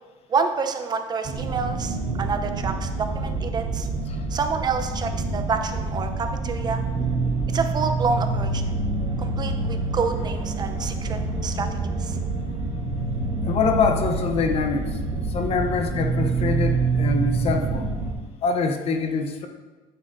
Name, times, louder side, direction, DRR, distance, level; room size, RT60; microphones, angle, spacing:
voice 1, 0.3-3.9 4.3-6.8 7.5-8.6 9.2-12.2, right 5 dB, 30° right, 7 dB, 0.7 m, -28 dB
sound 1, 1.2-18.1, right 3 dB, 45° right, 1.4 m, -27 dB
voice 2, 13.4-15.0 15.3-17.9 18.4-19.5, left 5 dB, 45° left, 5 dB, 0.8 m, -25 dB
8.9 x 8.0 x 2.7 m, 1.3 s
cardioid pair, 130°, 14 cm